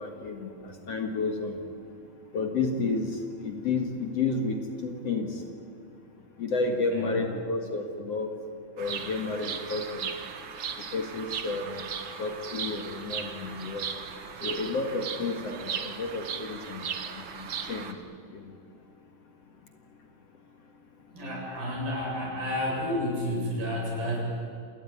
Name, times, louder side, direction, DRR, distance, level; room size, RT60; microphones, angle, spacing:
voice 1, 0.0-1.6 2.3-5.4 6.4-8.3 8.8-10.1 10.9-11.9 12.2-13.9 14.4-18.0 18.3-18.4, left 3 dB, 55° left, 4 dB, 2.3 m, -31 dB
Bird vocalization bird call bird song, 8.8-17.9, right 7 dB, 50° right, 1.6 m, -37 dB
voice 2, 21.1-24.2, left 1 dB, 80° right, -2 dB, 9.5 m, -31 dB
27.0 x 19.5 x 9.7 m, 2.5 s
omnidirectional pair, 4.1 m